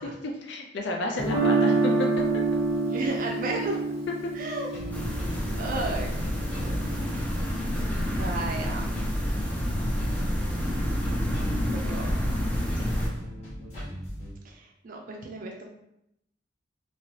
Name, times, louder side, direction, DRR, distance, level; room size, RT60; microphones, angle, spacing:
voice 1, 0.0-2.1 12.8-12.9, left 2 dB, 65° left, 1 dB, 0.4 m, -32 dB
Guitar, 1.2-7.2, right 3 dB, 10° right, 0.8 m, -27 dB
voice 2, 2.8-3.8 4.4-4.7 5.6-6.7 7.5-7.6 8.2-8.9 11.7-12.1 14.4-15.7, right 2 dB, 45° right, 1 dB, 0.4 m, -34 dB
sound 1, 4.7-14.3, equal, 35° left, 1.2 m, -39 dB
sound 2, 4.9-13.1, equal, 10° left, 0.5 m, -29 dB
3.0 x 2.9 x 2.8 m, 0.80 s
head